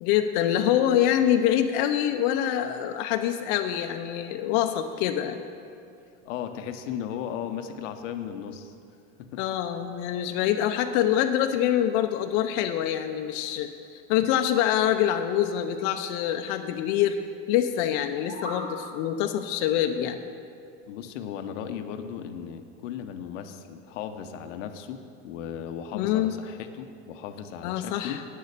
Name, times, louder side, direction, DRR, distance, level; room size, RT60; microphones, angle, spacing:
voice 1, 0.0-5.4 9.4-17.2 17.5-20.2 25.9-26.3 27.6-28.2, left 11 dB, 60° left, 6 dB, 0.6 m, -25 dB
voice 2, 6.2-8.7 9.2-9.4 20.9-28.2, left 8 dB, 85° left, 8 dB, 0.8 m, -36 dB
sound 1, 18.0-18.7, left 1 dB, 15° right, 2.1 m, -37 dB
9.3 x 6.6 x 6.7 m, 2.4 s
supercardioid pair, 115°, 36 cm